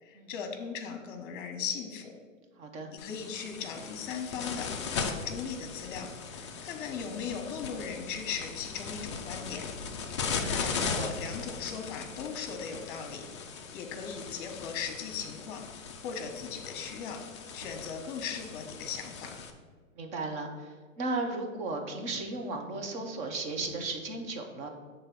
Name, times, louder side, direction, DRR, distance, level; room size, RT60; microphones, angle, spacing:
voice 1, 0.0-2.1 2.9-9.6 10.1-15.6 16.0-17.2 17.5-19.3, left 6 dB, 40° left, 5 dB, 1.2 m, -38 dB
voice 2, 2.6-2.9 10.3-11.1 20.0-24.7, right 3 dB, 15° right, 4 dB, 0.6 m, -36 dB
sound 1, 3.0-19.5, left 5 dB, 25° left, 0.3 m, -38 dB
6.6 x 3.9 x 6.0 m, 1.5 s
hypercardioid pair, 130°, 40 cm